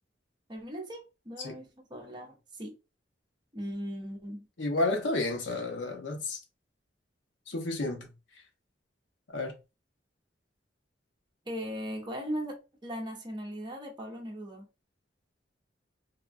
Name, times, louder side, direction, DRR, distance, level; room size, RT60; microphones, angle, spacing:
voice 1, 0.5-2.8 3.5-4.5 11.5-14.7, equal, 25° right, 0.8 m, -38 dB
voice 2, 4.6-6.4 7.5-8.1 9.3-9.5, left 2 dB, 75° left, 0.7 m, -31 dB
3.5 x 2.2 x 2.5 m
head